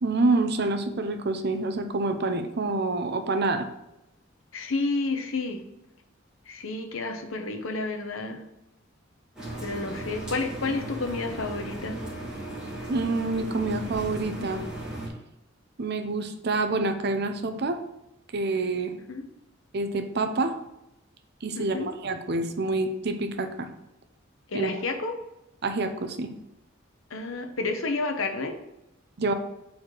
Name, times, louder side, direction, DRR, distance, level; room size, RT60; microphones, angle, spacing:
voice 1, 0.0-3.7 12.9-14.6 15.8-17.8 18.3-18.9 19.7-20.5 21.4-23.7 24.5-24.7 25.6-26.3 29.2-29.3, right 3 dB, 55° right, 7 dB, 0.7 m, -27 dB
voice 2, 4.5-5.6 6.5-8.4 9.6-12.0 18.9-19.2 21.6-21.9 24.5-25.2 27.1-28.6, left 3 dB, 85° left, 5 dB, 0.9 m, -30 dB
sound 1, 9.4-15.1, right 1 dB, 5° right, 2.5 m, -36 dB
4.8 x 4.2 x 5.9 m, 0.90 s
head